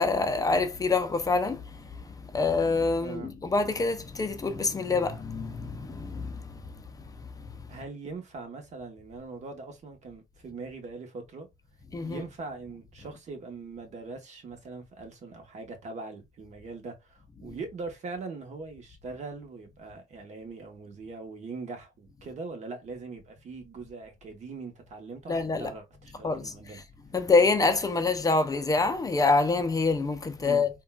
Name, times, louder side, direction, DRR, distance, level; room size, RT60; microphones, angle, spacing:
voice 1, 0.0-1.6 2.3-6.4 11.9-12.2 25.3-25.7 26.2-26.5 27.1-30.7, left 3 dB, 20° left, 0.5 m, -26 dB
voice 2, 3.0-3.3 7.7-11.5 12.0-26.8 30.4-30.7, right 3 dB, 45° right, 1.0 m, -41 dB
3.7 x 2.3 x 2.2 m
cardioid pair, 110°, 17 cm